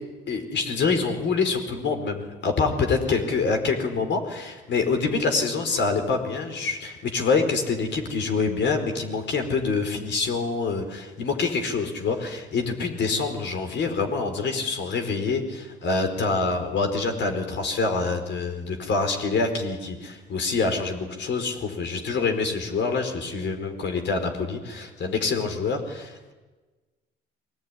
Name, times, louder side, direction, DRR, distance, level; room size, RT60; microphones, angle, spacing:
voice 1, 0.3-26.3, left 4 dB, 65° left, 5 dB, 4.5 m, -26 dB
22.0 x 19.0 x 10.0 m, 1.2 s
cardioid pair, 90°, 20 cm